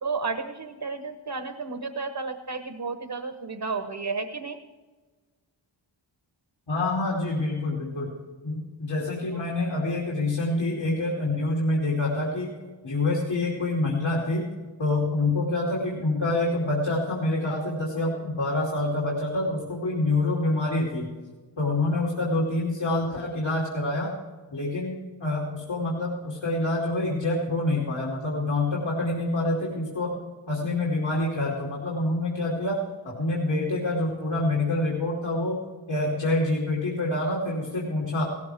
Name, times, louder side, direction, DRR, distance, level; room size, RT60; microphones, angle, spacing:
voice 1, 0.0-4.6 9.3-9.4, right 4 dB, 50° right, 8 dB, 1.1 m, -32 dB
voice 2, 6.7-8.1 8.4-12.5 12.8-14.5 14.8-21.1 21.6-24.1 24.5-30.2 30.5-35.6 35.9-38.2, left 2 dB, 75° left, -4 dB, 2.9 m, -26 dB
16.5 x 14.0 x 3.5 m, 1.4 s
cardioid pair, 40°, 45 cm